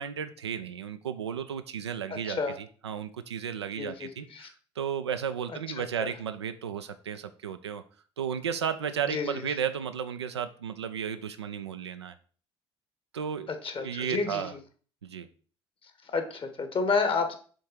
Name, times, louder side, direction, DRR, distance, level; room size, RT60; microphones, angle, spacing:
voice 1, 0.0-7.8 8.2-12.1 13.1-13.5 13.8-14.5 15.0-15.3, right 8 dB, 90° right, 9 dB, 0.4 m, -34 dB
voice 2, 2.1-2.5 3.7-4.5 6.0-6.1 9.1-9.4 13.6-14.4 16.1-17.4, left 4 dB, 40° left, 7 dB, 1.4 m, -30 dB
6.4 x 3.7 x 4.4 m, 0.41 s
hypercardioid pair, 55°, 14 cm